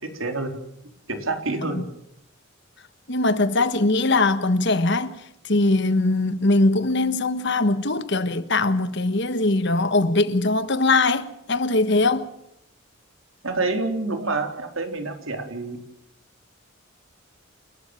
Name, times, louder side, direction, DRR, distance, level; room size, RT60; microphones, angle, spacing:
voice 1, 0.0-0.6 1.1-1.8 13.4-15.8, right 3 dB, 75° right, 3.9 m, -27 dB
voice 2, 3.1-12.3, left 2 dB, 55° left, 1.4 m, -21 dB
29.5 x 13.0 x 9.1 m
head